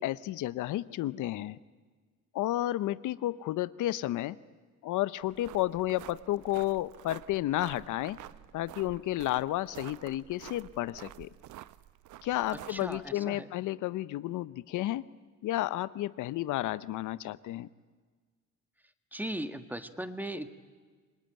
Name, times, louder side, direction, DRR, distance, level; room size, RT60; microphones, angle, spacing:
voice 1, 0.0-1.6 2.3-4.4 4.8-8.2 8.5-11.3 12.2-15.0 15.4-17.7, left 15 dB, 85° left, 17 dB, 0.7 m, -32 dB
sound 1, 5.2-13.1, right 14 dB, 80° right, 0.7 m, -50 dB
voice 2, 12.7-13.5 19.1-20.5, right 1 dB, 5° right, 9 dB, 1.6 m, -38 dB
28.0 x 19.5 x 9.0 m, 1.5 s
cardioid pair, 90°, 30 cm